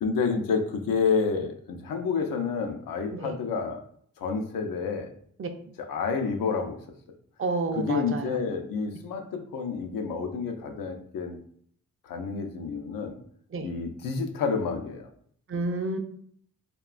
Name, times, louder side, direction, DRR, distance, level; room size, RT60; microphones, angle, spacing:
voice 1, 0.0-3.8 4.2-5.1 5.9-6.8 7.7-11.4 12.0-13.2 13.6-15.1, left 5 dB, 85° left, 5 dB, 0.5 m, -29 dB
voice 2, 7.4-8.4 13.5-13.7 15.5-16.0, right 3 dB, 40° right, 5 dB, 0.4 m, -30 dB
2.9 x 2.2 x 2.4 m, 0.62 s
cardioid pair, 60°, 33 cm